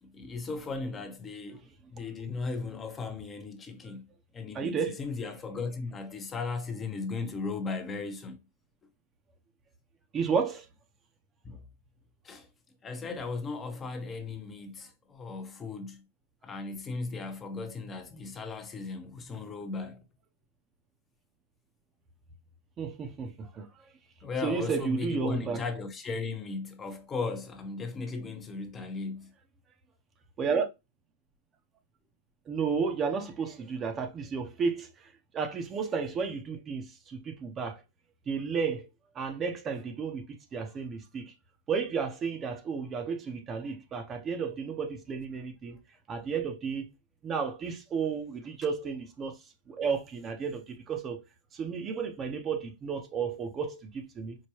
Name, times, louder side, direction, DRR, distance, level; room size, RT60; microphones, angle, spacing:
voice 1, 0.0-4.1 4.3-8.4 11.4-11.6 12.2-12.5 12.8-16.0 16.4-20.0 24.2-29.3, left 4 dB, 20° left, 0.6 m, -36 dB
voice 2, 4.5-5.0 10.1-10.7 22.8-23.7 24.4-25.6 30.4-30.7 32.5-37.8 38.3-38.9 39.1-40.3 40.5-41.3 41.7-45.8 46.1-46.9 47.2-49.4 49.7-51.2 51.5-54.4, right 5 dB, 20° right, 0.6 m, -32 dB
4.6 x 2.2 x 2.9 m
hypercardioid pair, 140°, 0 cm